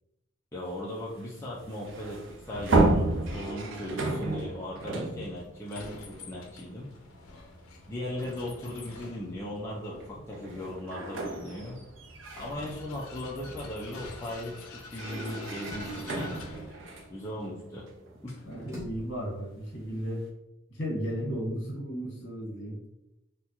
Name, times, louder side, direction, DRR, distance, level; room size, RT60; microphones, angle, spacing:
voice 1, 0.5-6.9 7.9-11.8 12.4-16.5 17.1-17.9 18.2-18.3, left 1 dB, 15° left, -6 dB, 0.4 m, -38 dB
sound 1, 0.6-7.0 7.4-7.6 8.7-8.8 9.3-19.0, right 2 dB, 60° right, 0.5 m, -32 dB
Vehicle, 1.8-19.9, left 3 dB, 85° left, 0.5 m, -49 dB
sound 2, 12.3-17.6 18.1-19.3, left 1 dB, 15° right, 0.7 m, -50 dB
voice 2, 18.4-20.2 20.7-22.7, equal, 55° left, -4 dB, 1.4 m, -34 dB
3.7 x 2.2 x 2.8 m, 0.89 s
head